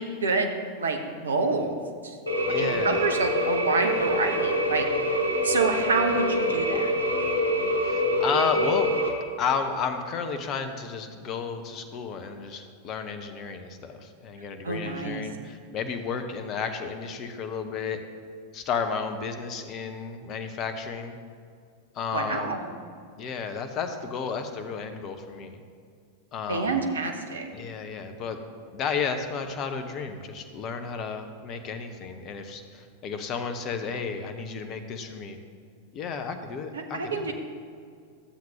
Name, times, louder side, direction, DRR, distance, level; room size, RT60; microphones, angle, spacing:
voice 1, 0.0-1.8 2.0-2.2 2.5-4.9 5.2-6.8 14.6-15.2 22.1-22.6 26.5-27.5 36.7-37.3, right 3 dB, 70° right, 4 dB, 0.9 m, -28 dB
sound 1, 2.3-9.1, equal, 85° left, 1.5 m, -25 dB
voice 2, 2.5-3.0 7.8-8.9 9.4-18.0 18.5-21.2 21.9-22.6 23.2-25.6 26.3-26.8 27.5-28.4 28.7-35.4 35.9-37.3, left 6 dB, 35° left, 7 dB, 0.8 m, -32 dB
13.0 x 7.5 x 2.9 m, 2.3 s
figure-of-eight pair, 90°, 0 cm